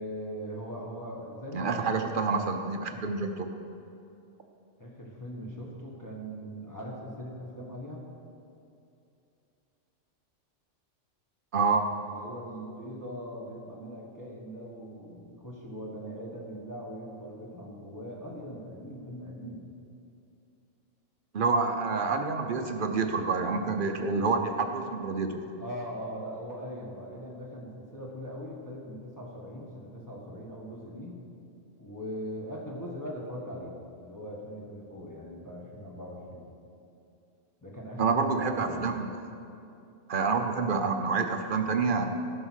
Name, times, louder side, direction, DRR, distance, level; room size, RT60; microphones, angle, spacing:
voice 1, 0.0-2.2 4.8-8.1 12.0-19.7 25.6-31.2 31.8-36.5 37.6-38.9, equal, 15° left, -4 dB, 1.5 m, -40 dB
voice 2, 1.5-3.5 11.5-11.9 21.3-25.4 38.0-39.1 40.1-42.0, right 4 dB, 50° right, 5 dB, 0.8 m, -28 dB
13.5 x 5.7 x 6.3 m, 2.7 s
omnidirectional pair, 1.3 m